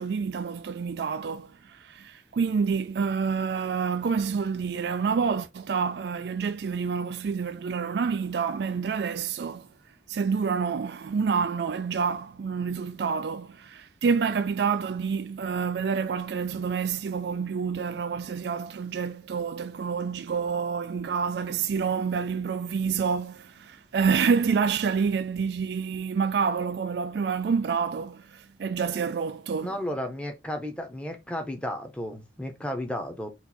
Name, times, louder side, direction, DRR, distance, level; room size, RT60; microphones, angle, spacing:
voice 1, 0.0-9.7 10.1-29.8, right 6 dB, 60° right, 0.3 m, -28 dB
voice 2, 29.6-33.3, left 1 dB, 5° left, 0.8 m, -33 dB
4.4 x 2.7 x 4.1 m
head